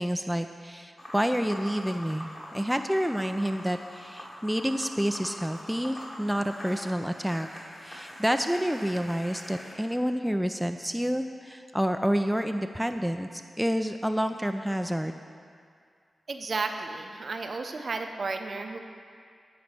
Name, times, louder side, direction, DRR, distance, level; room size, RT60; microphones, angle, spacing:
voice 1, 0.0-7.5 7.8-15.1, equal, 5° right, 6 dB, 0.3 m, -29 dB
sound 1, 1.0-9.7, equal, 35° left, 2.2 m, -44 dB
voice 2, 16.3-18.8, right 3 dB, 60° right, 5 dB, 0.6 m, -33 dB
9.6 x 4.0 x 6.0 m, 2.2 s
cardioid pair, 45°, 0 cm